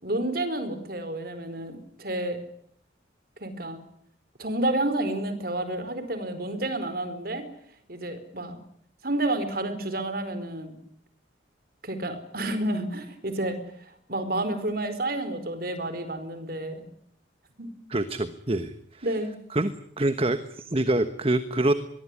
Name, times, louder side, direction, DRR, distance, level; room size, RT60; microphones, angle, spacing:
voice 1, 0.0-2.4 3.4-3.8 4.4-7.5 7.9-8.6 9.0-10.8 11.8-16.8 17.6-17.7 19.0-19.3, right 1 dB, 50° right, 11 dB, 4.7 m, -30 dB
voice 2, 17.9-19.0 19.5-19.7 20.0-21.7, right 1 dB, 30° right, 10 dB, 1.3 m, -25 dB
24.5 x 22.0 x 9.9 m, 0.68 s
head